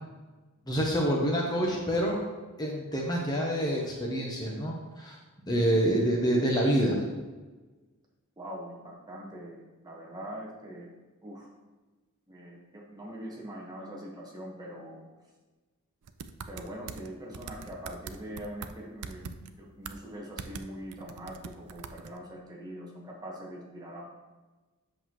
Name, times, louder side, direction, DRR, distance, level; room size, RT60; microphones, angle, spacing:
voice 1, 0.7-2.2 2.6-5.2 5.5-7.0, equal, 20° left, -2 dB, 0.9 m, -27 dB
voice 2, 8.4-10.9 11.2-11.5 12.3-15.0 16.5-19.3 19.6-24.0, equal, 20° right, -3 dB, 1.3 m, -42 dB
sound 1, 16.1-17.1 17.3-18.7 19.0-19.5 19.9-20.0 20.4-20.7 20.9-22.2, right 6 dB, 90° right, 0.5 m, -41 dB
8.0 x 6.3 x 3.1 m, 1.2 s
head